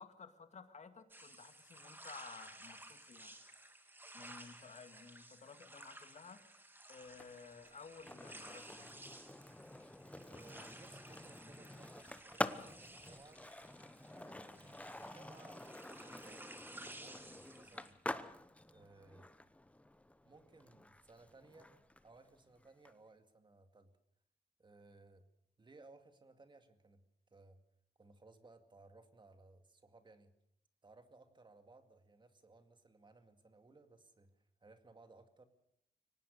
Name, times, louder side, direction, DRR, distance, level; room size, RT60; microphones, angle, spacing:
voice 1, 0.0-3.3 4.1-6.4 6.9-9.0, left 5 dB, 45° left, 8 dB, 2.2 m, -55 dB
sound 1, 1.1-17.9, right 1 dB, 15° right, 2.3 m, -56 dB
Skateboard, 7.1-22.9, left 1 dB, 10° left, 0.9 m, -48 dB
voice 2, 10.3-13.4 14.1-18.0 18.7-19.3 20.2-23.9 24.6-25.3 25.6-27.0 27.3-27.6 28.0-30.3 30.8-35.4, right 3 dB, 30° right, 8 dB, 2.2 m, -62 dB
24.0 x 19.0 x 6.7 m, 0.72 s
wide cardioid pair, 120°, 16 cm